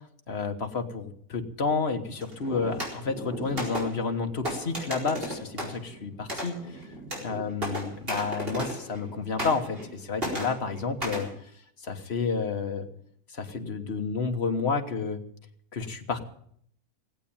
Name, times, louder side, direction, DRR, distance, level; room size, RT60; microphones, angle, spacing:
voice 1, 0.3-6.8 7.2-11.3 11.8-12.9 13.3-15.2 15.7-16.2, left 4 dB, 45° left, 5 dB, 1.6 m, -30 dB
sound 1, 2.2-9.1 9.4-9.9 10.2-11.3, equal, 35° right, 4.7 m, -35 dB
18.5 x 8.4 x 8.8 m, 0.66 s
omnidirectional pair, 1.7 m